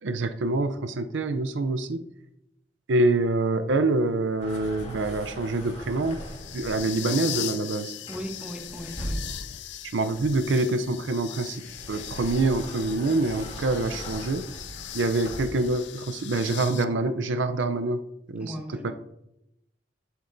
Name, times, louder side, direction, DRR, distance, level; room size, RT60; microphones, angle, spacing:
voice 1, 0.0-2.1 2.9-6.2 6.5-7.9 9.9-14.5 14.9-18.0 18.3-18.9, right 2 dB, 85° right, 9 dB, 0.5 m, -26 dB
sound 1, 3.7-16.8, left 12 dB, 70° left, 0.5 m, -40 dB
sound 2, 4.4-7.0 8.1-9.6 10.1-15.7, equal, 40° left, 2.7 m, -40 dB
voice 2, 8.1-9.2 18.4-18.9, equal, 5° right, 3 dB, 1.1 m, -37 dB
11.0 x 8.0 x 2.6 m, 0.85 s
head